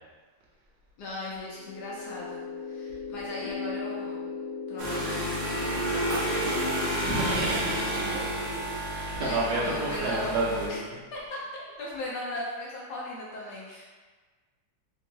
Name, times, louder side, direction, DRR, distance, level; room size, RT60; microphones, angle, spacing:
voice 1, 1.0-4.3 4.7-6.9 9.2-10.3 10.7-10.8 11.1-13.9, left 1 dB, 70° left, -5 dB, 1.1 m, -38 dB
sound 1, 1.4-8.0, left 4 dB, 45° left, 1.2 m, -37 dB
sound 2, 4.8-10.7, right 1 dB, 80° right, 1.5 m, -30 dB
voice 2, 7.0-8.3 8.9-10.8, right 2 dB, 65° right, -4 dB, 1.1 m, -30 dB
3.5 x 2.9 x 2.6 m, 1.4 s
omnidirectional pair, 2.0 m